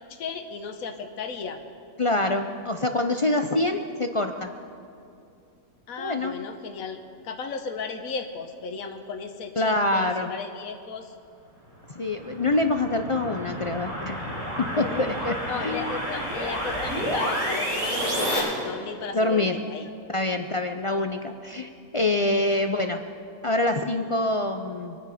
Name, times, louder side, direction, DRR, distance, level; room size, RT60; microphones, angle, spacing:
voice 1, 0.1-1.6 5.9-11.1 14.7-15.1 15.4-19.9 22.4-22.6, left 5 dB, 75° left, 6 dB, 1.4 m, -35 dB
voice 2, 2.0-4.5 6.0-6.4 9.6-10.3 12.0-14.2 14.6-15.9 19.1-19.6 20.1-23.0 23.4-25.0, left 2 dB, 50° left, 6 dB, 0.3 m, -25 dB
sound 1, 11.9-18.4, equal, 80° right, 5.1 m, -30 dB
25.5 x 9.7 x 5.0 m, 2.6 s
omnidirectional pair, 1.5 m